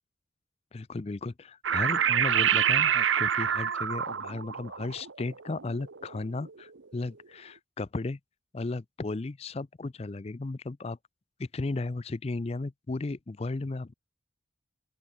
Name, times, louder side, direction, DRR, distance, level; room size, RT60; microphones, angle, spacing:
voice 1, 0.7-8.2 8.5-11.0 11.4-13.9, left 3 dB, 30° left, 0.4 m, -35 dB
sound 1, 1.6-6.5, right 8 dB, 80° right, 0.9 m, -27 dB
open air
head